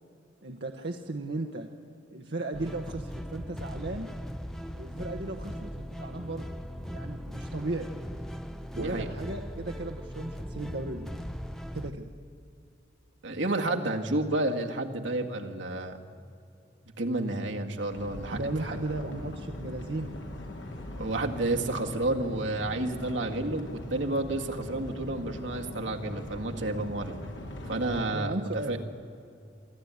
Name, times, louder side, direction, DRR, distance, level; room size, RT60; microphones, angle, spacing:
voice 1, 0.4-1.7 2.1-4.1 4.8-6.5 6.9-7.9 8.8-11.3 11.7-12.1 18.3-20.1 28.1-28.8, right 2 dB, 65° right, 2 dB, 1.1 m, -35 dB
sound 1, 2.5-11.9, equal, ahead, 0.7 m, -39 dB
voice 2, 8.7-9.1 13.2-16.1 17.0-18.8 21.0-27.2 27.7-28.8, right 2 dB, 80° right, 3 dB, 1.8 m, -31 dB
sound 2, 17.9-28.0, left 1 dB, 80° left, 2.7 m, -41 dB
25.0 x 13.0 x 9.6 m, 2.5 s
head